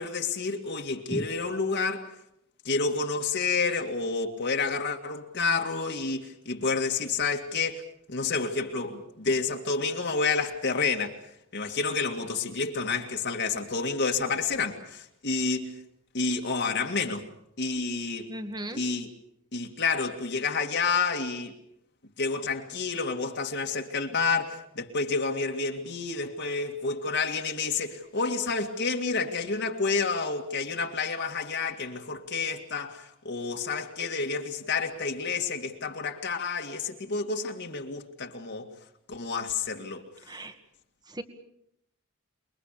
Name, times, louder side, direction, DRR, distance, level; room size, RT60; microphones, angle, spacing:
voice 1, 0.0-2.1 2.6-7.8 8.1-11.2 11.5-15.7 16.1-17.2 17.6-18.3 18.7-19.1 19.5-21.5 22.2-38.7 39.1-40.0, left 4 dB, 55° left, 2.3 m, -29 dB
voice 2, 18.3-18.8 40.3-40.5 41.1-41.2, equal, 20° right, 2.1 m, -35 dB
28.5 x 22.5 x 6.8 m
head